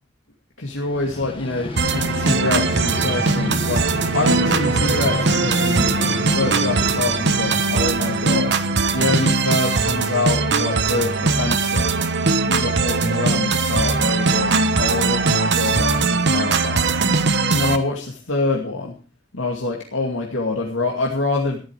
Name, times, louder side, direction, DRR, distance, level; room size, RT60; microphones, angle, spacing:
voice 1, 0.6-5.9 6.2-8.6 8.9-11.9 12.5-16.9 17.5-19.0 19.3-21.6, left 3 dB, 85° left, -1 dB, 2.4 m, -25 dB
Vehicle, 0.7-9.7, left 1 dB, 30° left, 1.7 m, -30 dB
sound 1, 1.8-17.8, right 4 dB, 65° right, 1.3 m, -20 dB
14.5 x 11.5 x 4.9 m, 0.37 s
head